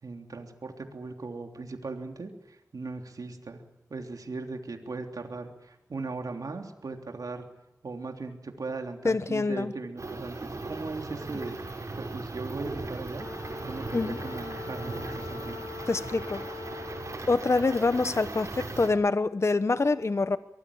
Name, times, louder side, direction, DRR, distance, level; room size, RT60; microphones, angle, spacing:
voice 1, 0.0-3.6 3.9-7.5 7.8-11.6 11.9-13.3 13.6-15.6, right 3 dB, 75° right, 4 dB, 3.3 m, -38 dB
voice 2, 9.0-9.7 13.9-14.2 15.9-16.4 17.3-20.4, left 3 dB, 50° left, 12 dB, 1.0 m, -25 dB
sound 1, 10.0-18.9, right 2 dB, 55° right, 6.8 m, -38 dB
Wind instrument woodwind instrument, 13.1-17.3, left 4 dB, 80° left, 7.9 m, -42 dB
24.0 x 19.0 x 8.6 m, 0.90 s
wide cardioid pair, 55°, 6 cm